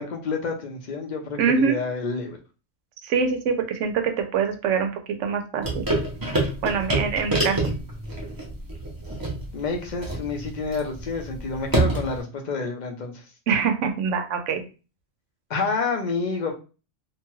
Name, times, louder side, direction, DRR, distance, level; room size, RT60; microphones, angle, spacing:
voice 1, 0.0-2.4 9.5-13.1 15.5-16.5, left 4 dB, 50° left, 3 dB, 0.7 m, -28 dB
voice 2, 1.4-1.8 3.0-4.9 5.2-5.8 6.6-7.6 13.5-14.6, right 6 dB, 85° right, 6 dB, 0.9 m, -24 dB
sound 1, 5.6-12.2, right 2 dB, 25° right, 0.6 m, -27 dB
2.8 x 2.2 x 3.0 m, 0.33 s
omnidirectional pair, 1.2 m